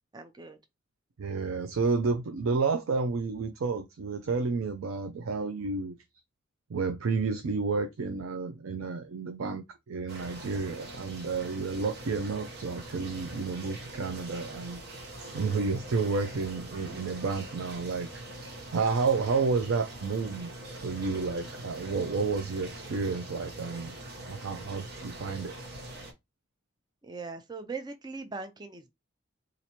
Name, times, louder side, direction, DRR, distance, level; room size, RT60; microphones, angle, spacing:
voice 1, 0.1-0.6 17.2-17.3 27.0-28.9, right 4 dB, 20° right, 0.4 m, -40 dB
voice 2, 1.2-6.0 6.7-14.8 15.3-18.1 18.7-20.5 20.8-23.9 24.3-25.5, right 4 dB, 90° right, 0.4 m, -30 dB
sound 1, 10.1-26.1, right 1 dB, 50° right, 0.9 m, -43 dB
4.3 x 2.5 x 2.8 m
head